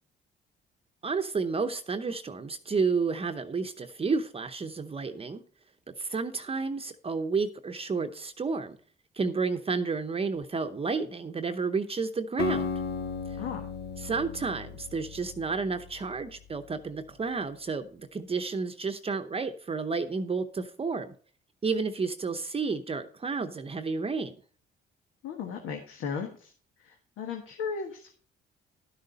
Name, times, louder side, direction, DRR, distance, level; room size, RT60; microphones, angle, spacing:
voice 1, 1.0-5.4 6.0-8.8 9.2-12.7 14.0-21.1 21.6-24.3, right 4 dB, 30° right, 8 dB, 0.8 m, -31 dB
Acoustic guitar, 12.4-16.5, left 5 dB, 55° left, 0.8 m, -35 dB
voice 2, 25.2-26.5 26.8-28.2, left 6 dB, 90° left, 3 dB, 1.4 m, -36 dB
12.0 x 6.6 x 4.0 m, 0.42 s
cardioid pair, 90°, 20 cm